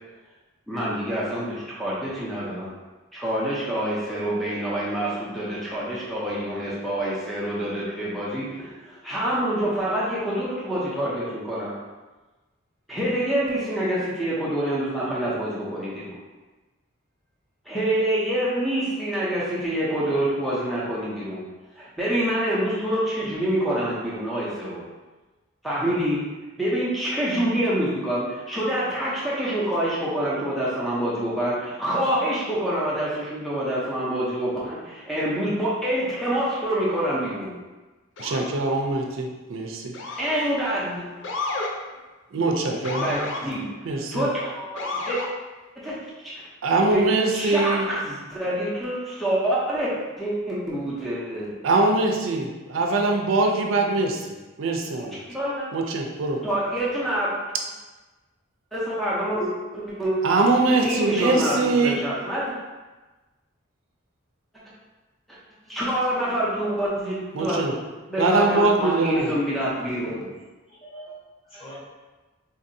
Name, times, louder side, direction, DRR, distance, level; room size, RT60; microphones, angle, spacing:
voice 1, 0.7-2.7 3.1-11.7 12.9-16.1 17.7-21.4 21.8-24.8 25.6-26.2 26.6-37.5 40.2-41.3 42.8-43.7 44.1-45.2 45.8-46.0 46.2-46.4 46.9-47.0 47.3-49.9 50.2-51.5 55.3-55.7 56.4-57.3 58.7-60.2 60.8-62.6 65.7-67.6 67.9-70.2 71.5-71.6, right 1 dB, ahead, -8 dB, 0.6 m, -26 dB
Motor vehicle (road) / Siren, 38.2-38.5 39.9-40.5 41.2-41.7 42.8-43.4 44.8-45.3, left 3 dB, 60° left, 0.4 m, -31 dB
voice 2, 38.2-39.9 42.3-43.3 43.8-44.3 46.6-47.9 51.6-55.2 55.7-56.4 60.2-62.0 67.3-67.7 68.2-69.3, right 3 dB, 75° right, 1 dB, 0.4 m, -23 dB
voice 3, 69.8-70.3 70.7-71.1 71.4-71.8, left 1 dB, 30° left, -8 dB, 1.1 m, -41 dB
3.8 x 2.6 x 2.6 m, 1.2 s
head